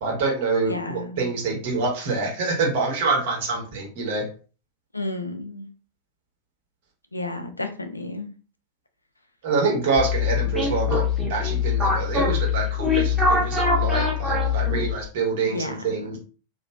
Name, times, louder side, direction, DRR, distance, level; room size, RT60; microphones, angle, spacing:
voice 1, 0.0-4.3 9.4-16.2, right 4 dB, 55° right, -1 dB, 1.1 m, -26 dB
voice 2, 0.6-1.3 4.9-5.7 7.1-8.3 15.4-16.2, left 2 dB, 85° left, 7 dB, 0.4 m, -32 dB
sound 1, 10.0-15.1, left 5 dB, ahead, 0.9 m, -23 dB
3.0 x 2.4 x 2.3 m, 0.37 s
figure-of-eight pair, 90°, 0 cm